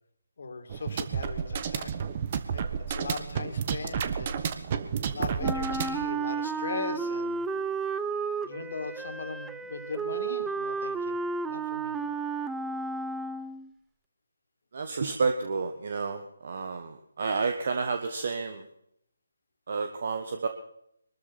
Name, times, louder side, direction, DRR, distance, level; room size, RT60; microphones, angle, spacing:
voice 1, 0.4-1.9 2.5-2.6 2.9-4.5 5.1-7.4 8.4-11.2 11.4-12.0, left 4 dB, 60° left, 6 dB, 2.6 m, -38 dB
sound 1, 0.7-6.1, right 7 dB, 35° right, 1.2 m, -31 dB
Wind instrument woodwind instrument, 5.4-13.7, right 4 dB, 5° right, 0.5 m, -32 dB
voice 2, 14.7-18.6 19.7-20.5, right 4 dB, 50° right, 7 dB, 1.4 m, -30 dB
23.0 x 13.5 x 4.3 m, 0.75 s
figure-of-eight pair, 150°, 0 cm